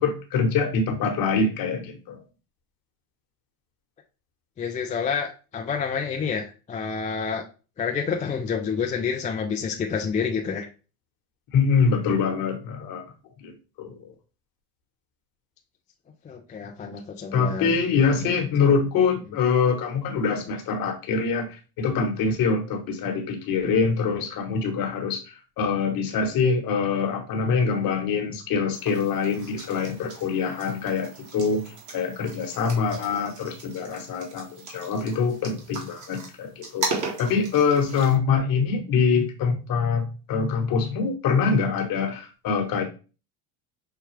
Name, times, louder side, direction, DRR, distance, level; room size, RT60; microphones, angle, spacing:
voice 1, 0.0-2.2 11.5-13.0 13.4-14.1 17.3-31.6 31.9-42.8, left 5 dB, 50° left, 4 dB, 1.2 m, -24 dB
voice 2, 4.6-7.4 7.8-10.7 16.2-17.8 18.1-18.3, left 6 dB, 20° left, 3 dB, 0.4 m, -28 dB
sound 1, 28.7-38.2, right 3 dB, 40° right, 1.7 m, -37 dB
5.8 x 2.2 x 3.2 m, 0.34 s
supercardioid pair, 95°, 45 cm